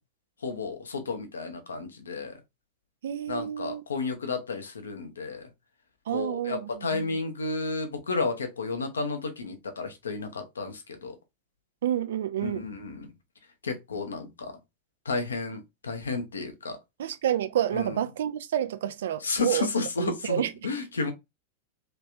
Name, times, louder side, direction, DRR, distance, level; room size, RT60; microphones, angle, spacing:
voice 1, 0.4-2.4 3.3-5.5 6.1-11.1 12.4-13.1 13.6-14.6 15.0-16.8 17.7-18.0 19.2-21.1, left 3 dB, 70° left, 0.8 m, -32 dB
voice 2, 3.0-3.8 6.1-7.1 11.8-12.7 17.0-20.5, right 11 dB, 60° right, 0.4 m, -29 dB
3.2 x 3.2 x 2.6 m
figure-of-eight pair, 90°, 0 cm